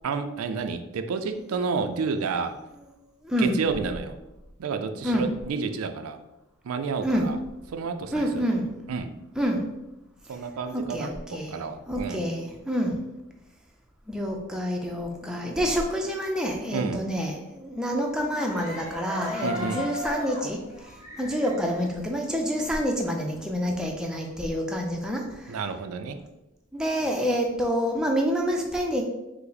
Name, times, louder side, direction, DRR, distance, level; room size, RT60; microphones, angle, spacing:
voice 1, 0.0-2.6 3.4-4.2 4.6-6.2 6.6-7.4 7.7-8.6 8.9-9.1 10.3-12.2 16.7-17.0 19.4-19.9 25.5-26.2, right 5 dB, 85° right, 8 dB, 0.4 m, -30 dB
voice 2, 3.2-3.6 5.0-5.3 7.0-7.3 8.1-8.7 9.4-9.6 10.7-11.6 11.9-13.0 14.1-20.6 21.2-25.2 26.7-29.0, equal, 5° right, 0 dB, 0.4 m, -27 dB
sound 1, 18.3-22.9 23.2-24.3, left 1 dB, 35° left, 1.2 m, -37 dB
5.5 x 2.1 x 3.9 m, 0.96 s
head